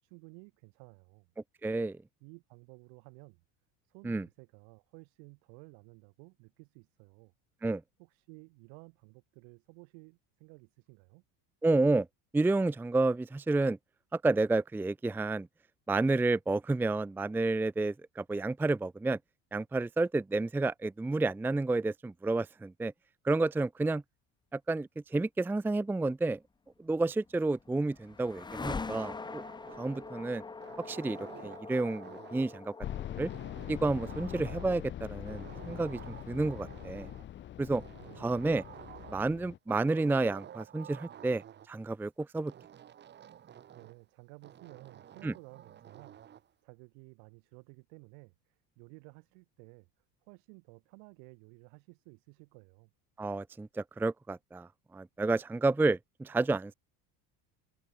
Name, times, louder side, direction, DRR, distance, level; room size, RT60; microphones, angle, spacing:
voice 1, 0.0-1.3 2.2-3.4 3.8-7.3 8.0-11.2 38.0-38.4 43.7-49.9 50.2-52.9, right 40 dB or more, 85° right, 4.7 m, -54 dB
voice 2, 1.6-2.0 4.0-4.2 7.6-7.8 11.6-12.1 12.3-13.8 14.1-15.5 15.9-19.2 19.5-22.9 23.2-24.0 24.5-26.4 26.8-29.4 29.8-30.4 30.9-32.7 33.2-33.3 33.7-37.1 37.6-37.8 38.2-38.6 39.1-42.5 45.2-45.3 53.2-56.7, right 2 dB, 5° right, 0.6 m, -30 dB
sound 1, 27.1-37.2, left 4 dB, 10° left, 1.2 m, -44 dB
sound 2, 28.7-30.2 30.6-32.7 33.3-34.9 35.2-37.3 37.7-39.3 39.7-41.7 42.5-44.0 44.4-46.5, right 10 dB, 25° right, 1.3 m, -51 dB
sound 3, 32.8-39.6, left 11 dB, 30° left, 0.8 m, -43 dB
cardioid pair, 160°, 38 cm